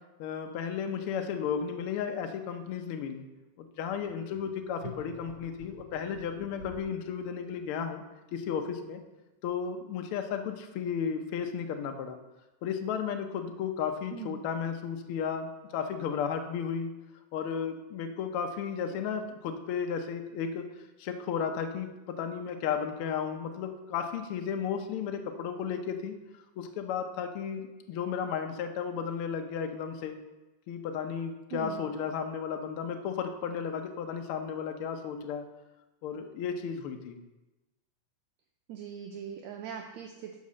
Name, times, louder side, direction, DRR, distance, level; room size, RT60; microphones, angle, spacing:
voice 1, 0.2-3.3 3.6-8.0 8.3-9.0 9.4-12.2 12.6-16.9 17.3-20.6 21.0-30.2 30.7-35.4 36.0-37.2, left 7 dB, 85° left, 5 dB, 1.2 m, -34 dB
sound 1, 4.8-7.0, right 2 dB, 20° right, 3.3 m, -47 dB
voice 2, 38.7-40.4, right 8 dB, 75° right, 3 dB, 1.7 m, -40 dB
9.6 x 4.8 x 6.3 m, 1.1 s
omnidirectional pair, 3.5 m